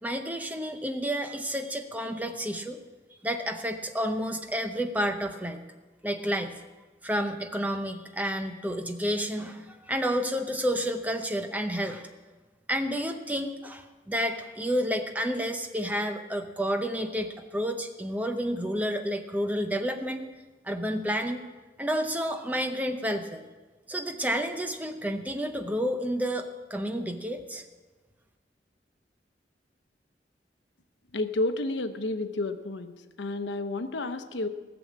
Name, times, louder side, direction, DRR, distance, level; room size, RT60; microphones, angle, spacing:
voice 1, 0.0-2.8 3.2-5.6 6.0-6.6 7.0-12.1 12.7-20.3 20.6-21.4 21.8-23.4 23.9-27.6, equal, 10° right, 6 dB, 0.7 m, -30 dB
voice 2, 31.1-34.5, left 2 dB, 90° left, 9 dB, 0.8 m, -31 dB
17.0 x 7.0 x 7.3 m, 1.3 s
head